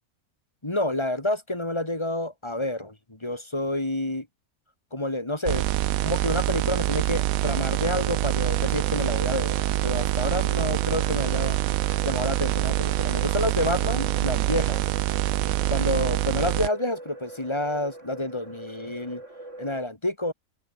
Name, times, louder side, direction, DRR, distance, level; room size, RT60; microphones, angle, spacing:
voice 1, 0.6-4.3 4.9-5.7 6.0-9.6 9.8-11.6 12.0-14.8 15.7-19.2 19.6-20.3, left 1 dB, 20° left, 2.3 m, -29 dB
sound 1, 5.5-16.7, right 15 dB, 80° right, 1.0 m, -25 dB
sound 2, 7.7-19.8, right 1 dB, 60° right, 7.3 m, -44 dB
omnidirectional pair, 1.5 m